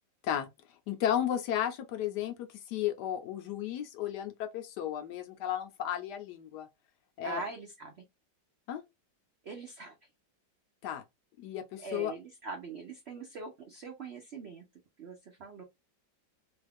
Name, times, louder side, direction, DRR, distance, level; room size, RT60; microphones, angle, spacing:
voice 1, 0.9-6.7 7.2-7.4 8.7-8.8 10.8-11.0 11.4-12.1, left 10 dB, 75° left, 1.1 m, -34 dB
voice 2, 7.2-8.0 9.4-9.9 11.8-14.6 15.0-15.6, right 4 dB, 85° right, 0.5 m, -42 dB
3.1 x 2.3 x 3.3 m
omnidirectional pair, 2.0 m